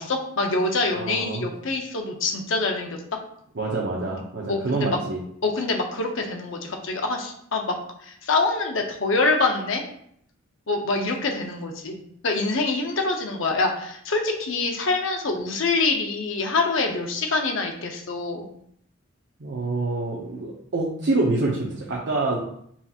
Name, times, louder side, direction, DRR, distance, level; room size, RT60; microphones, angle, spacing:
voice 1, 0.0-3.2 4.5-5.0 5.4-7.8 8.0-9.8 10.7-18.5, left 3 dB, 70° left, 3 dB, 0.7 m, -25 dB
voice 2, 0.9-1.5 3.5-5.2 19.4-22.4, right 2 dB, 65° right, -4 dB, 0.7 m, -26 dB
5.6 x 2.9 x 2.4 m, 0.68 s
head